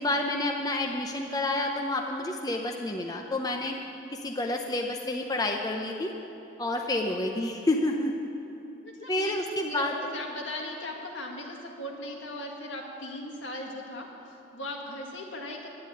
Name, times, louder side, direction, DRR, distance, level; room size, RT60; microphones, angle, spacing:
voice 1, 0.0-3.8 4.1-6.1 6.6-8.3 9.1-9.9, left 2 dB, 20° left, 2 dB, 0.6 m, -29 dB
voice 2, 6.9-7.2 8.8-9.3 9.6-15.7, left 1 dB, 75° left, 0 dB, 1.9 m, -38 dB
11.0 x 9.5 x 9.0 m, 2.9 s
head